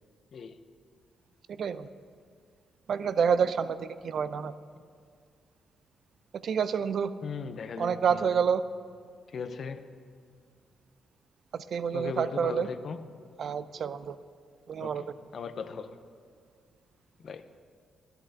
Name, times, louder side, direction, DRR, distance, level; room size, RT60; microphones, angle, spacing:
voice 1, 1.6-1.9 2.9-4.5 6.4-7.1 7.8-8.6 11.5-12.7 13.4-14.2 14.7-15.0, right 6 dB, 65° right, 0.3 m, -28 dB
voice 2, 7.2-8.4 9.3-9.9 11.9-13.0 14.8-15.1 15.3-16.0 17.2-17.5, left 5 dB, 60° left, 0.5 m, -38 dB
11.5 x 11.0 x 2.6 m
supercardioid pair, 55°, 0 cm